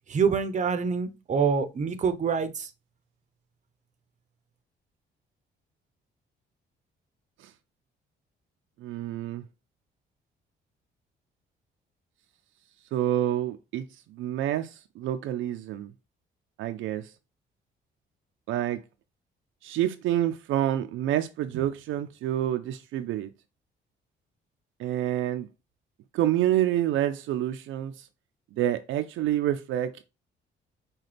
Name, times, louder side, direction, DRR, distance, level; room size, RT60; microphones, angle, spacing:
voice 1, 0.1-2.7, right 6 dB, 40° right, 0.7 m, -26 dB
voice 2, 8.8-9.4 12.9-13.8 14.1-14.7 15.0-15.9 16.6-17.1 18.5-18.8 19.6-23.3 24.8-25.5 26.1-27.9 28.6-29.9, right 12 dB, 85° right, 0.5 m, -27 dB
5.8 x 2.3 x 3.3 m
cardioid pair, 90°, 20 cm